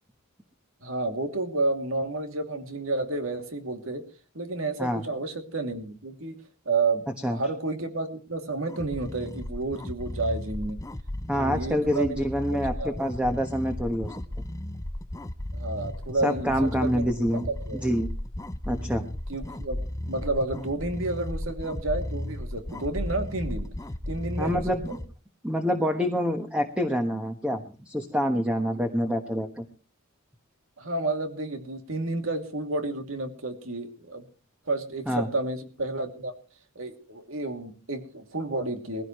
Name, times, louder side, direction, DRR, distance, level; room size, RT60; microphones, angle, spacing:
voice 1, 0.8-4.0 4.3-6.4 6.6-10.8 11.4-12.3 12.5-13.1 15.5-17.1 17.4-17.9 19.3-23.7 24.1-25.0 30.8-34.2 34.7-36.3 36.7-39.0, right 2 dB, 70° right, 5 dB, 2.8 m, -31 dB
sound 1, 8.7-25.1, left 1 dB, 15° left, 0.6 m, -35 dB
voice 2, 11.3-14.2 16.2-17.5 17.8-18.1 18.6-19.1 24.4-24.9 25.4-29.6 35.1-35.3, equal, 5° right, 5 dB, 1.3 m, -26 dB
20.5 x 16.0 x 3.1 m, 0.37 s
head